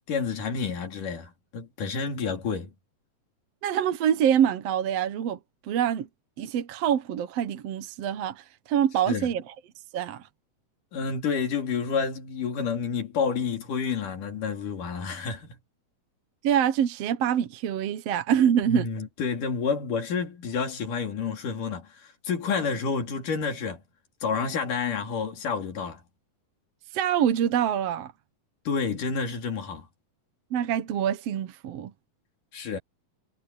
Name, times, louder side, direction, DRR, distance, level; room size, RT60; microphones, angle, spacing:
voice 1, 0.1-2.7 9.1-9.3 10.9-15.5 18.6-23.8 24.2-26.0 28.7-29.9 32.5-32.8, left 5 dB, 85° left, 4.6 m, -29 dB
voice 2, 3.6-6.1 6.4-9.5 9.9-10.3 16.4-18.9 26.9-28.1 30.5-31.9, right 9 dB, 65° right, 1.9 m, -25 dB
omnidirectional pair, 3.6 m